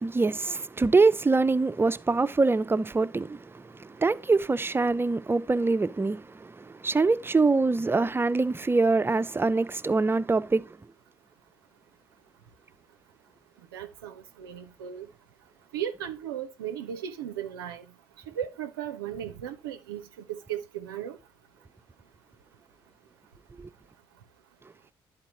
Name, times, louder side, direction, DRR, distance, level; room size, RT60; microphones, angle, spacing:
voice 1, 0.0-10.6 23.6-23.7, right 3 dB, 20° right, 0.5 m, -24 dB
voice 2, 13.7-15.1 15.7-17.8 18.3-21.2, right 10 dB, 85° right, 0.4 m, -36 dB
11.5 x 4.5 x 2.9 m
hypercardioid pair, 40°, 12 cm